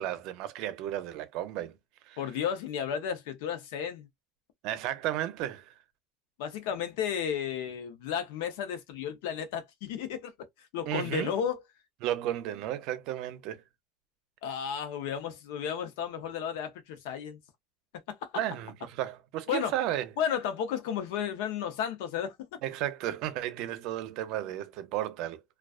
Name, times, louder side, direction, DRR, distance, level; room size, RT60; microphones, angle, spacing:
voice 1, 0.0-1.8 2.1-2.2 4.6-5.7 10.9-11.3 12.0-13.6 18.3-20.1 22.6-25.4, right 12 dB, 65° right, 0.6 m, -33 dB
voice 2, 2.2-4.1 6.4-10.5 10.7-11.6 14.4-17.4 18.1-18.3 19.5-19.7 20.2-22.6, left 8 dB, 85° left, 0.7 m, -33 dB
2.3 x 2.3 x 2.4 m
cardioid pair, 135°, 0 cm